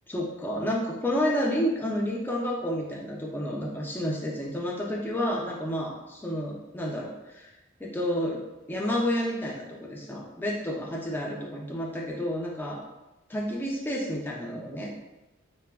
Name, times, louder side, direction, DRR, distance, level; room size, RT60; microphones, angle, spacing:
voice 1, 0.1-7.5 7.8-8.4 8.7-12.8 13.3-14.9, equal, 10° left, -2 dB, 0.3 m, -30 dB
3.2 x 2.0 x 2.3 m, 0.99 s
head